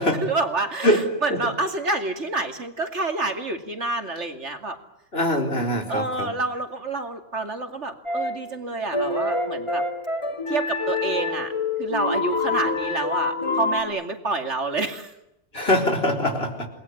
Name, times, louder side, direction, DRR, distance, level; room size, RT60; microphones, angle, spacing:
voice 1, 0.0-4.8 5.9-9.8 10.5-11.5 11.8-15.1, right 3 dB, 70° right, 6 dB, 2.8 m, -28 dB
voice 2, 0.8-1.4 5.1-6.3 15.5-16.7, left 1 dB, 55° left, 4 dB, 4.5 m, -23 dB
sound 1, 8.1-8.5 8.9-13.8, left 3 dB, 25° left, 3.2 m, -26 dB
28.5 x 20.5 x 9.8 m, 0.85 s
omnidirectional pair, 1.2 m